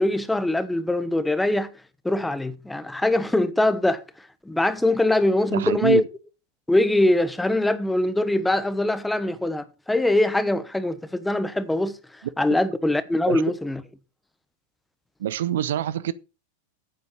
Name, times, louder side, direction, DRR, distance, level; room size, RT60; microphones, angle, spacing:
voice 1, 0.0-1.7 2.0-4.0 4.5-6.0 6.7-13.8, left 1 dB, 5° left, 0.9 m, -22 dB
voice 2, 5.5-6.1 13.3-13.4 15.2-16.1, right 11 dB, 60° right, 0.6 m, -25 dB
9.2 x 7.9 x 5.3 m
figure-of-eight pair, 90°, 0 cm